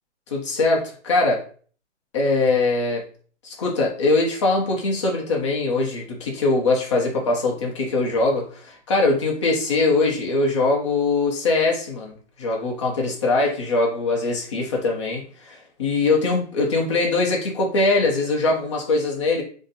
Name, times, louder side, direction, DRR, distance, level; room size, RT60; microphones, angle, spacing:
voice 1, 0.3-1.4 2.1-3.1 3.4-19.4, left 3 dB, 25° left, -1 dB, 0.6 m, -22 dB
2.7 x 2.0 x 3.9 m, 0.43 s
hypercardioid pair, 160°, 36 cm